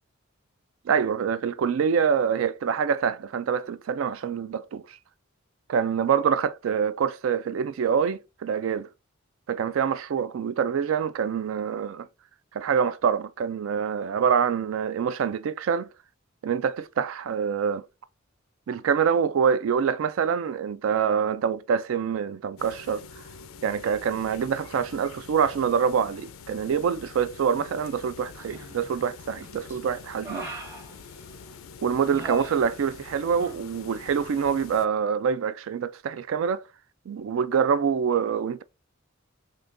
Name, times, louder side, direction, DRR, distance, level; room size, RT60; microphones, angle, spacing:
voice 1, 0.9-5.0 5.7-8.9 9.5-12.1 12.5-15.9 16.4-17.8 18.7-23.0 23.6-30.5 31.8-36.7 37.1-38.6, right 7 dB, 70° right, 0.3 m, -25 dB
sound 1, 22.6-34.9, left 5 dB, 75° left, 0.4 m, -46 dB
Human voice, 28.4-29.0 29.4-31.6 32.0-33.1 33.3-33.6, right 1 dB, 15° right, 1.0 m, -40 dB
3.6 x 2.7 x 2.5 m
head